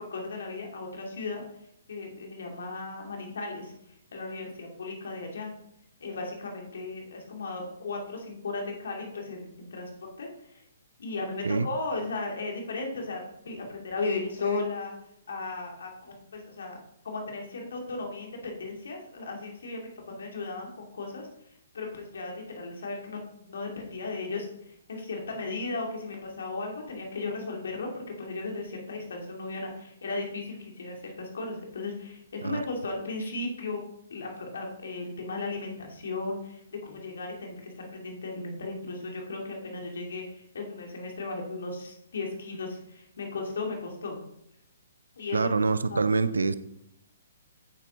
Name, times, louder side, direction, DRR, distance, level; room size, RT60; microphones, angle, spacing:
voice 1, 0.1-1.4 1.9-5.5 6.0-10.6 11.0-14.9 15.3-16.8 17.0-33.8 34.1-44.2 45.2-45.5 45.9-46.0, left 3 dB, 65° left, 1 dB, 2.9 m, -36 dB
voice 2, 45.3-46.5, right 4 dB, 75° right, 13 dB, 0.6 m, -25 dB
8.4 x 7.2 x 4.0 m, 0.77 s
figure-of-eight pair, 125°, 0 cm